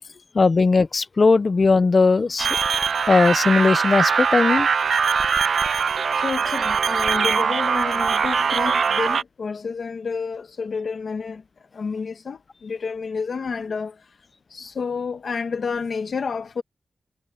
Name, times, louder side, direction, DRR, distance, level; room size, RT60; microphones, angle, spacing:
voice 1, 0.3-2.5 3.1-4.7, left 4 dB, 40° left, 0.5 m, -18 dB
sound 1, 2.4-9.2, right 6 dB, 85° right, 0.6 m, -21 dB
voice 2, 6.1-11.4 11.7-14.2 14.5-16.6, left 5 dB, 70° left, 1.3 m, -30 dB
wide cardioid pair, 140°, 0 cm